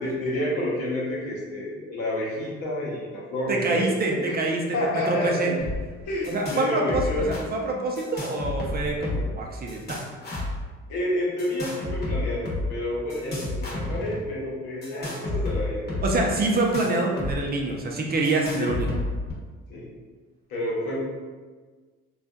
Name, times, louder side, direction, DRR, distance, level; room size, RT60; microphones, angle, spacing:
voice 1, 0.0-3.9 4.3-4.4 4.7-5.5 6.0-7.3 10.9-16.2 18.6-18.7 19.7-19.9 20.5-21.0, left 1 dB, 80° left, -5 dB, 0.9 m, -29 dB
voice 2, 3.5-4.6 4.9-5.5 6.3-10.0 16.0-18.9, right 2 dB, 35° right, 0 dB, 0.4 m, -26 dB
sound 1, 5.6-5.8 6.0-6.6 6.9-7.4 7.9-9.3 9.7-10.6 11.4-12.6 13.1-14.2 14.8-17.3 17.6-17.7 18.2-19.3, left 2 dB, 35° left, 0.9 m, -31 dB
2.7 x 2.3 x 2.2 m, 1.4 s
supercardioid pair, 80°, 29 cm